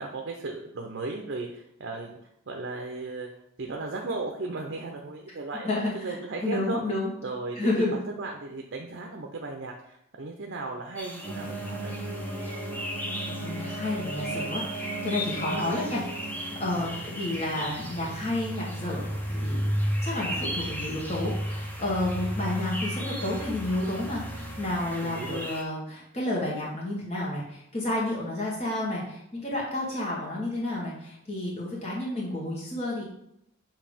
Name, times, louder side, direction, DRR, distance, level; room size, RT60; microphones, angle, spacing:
voice 1, 0.0-2.2 2.5-3.3 3.6-5.7 5.9-6.8 7.2-12.0 16.8-17.0 25.0-25.5, right 3 dB, 55° right, 2 dB, 0.6 m, -36 dB
voice 2, 5.6-7.1 7.5-7.9 13.4-16.0 16.3-19.7 20.0-33.0, left 1 dB, 30° left, -5 dB, 1.2 m, -31 dB
sound 1, 11.0-25.6, equal, 10° left, 0.7 m, -39 dB
sound 2, 11.2-25.4, right 1 dB, 10° right, 1.6 m, -34 dB
7.3 x 2.7 x 5.0 m, 0.78 s
head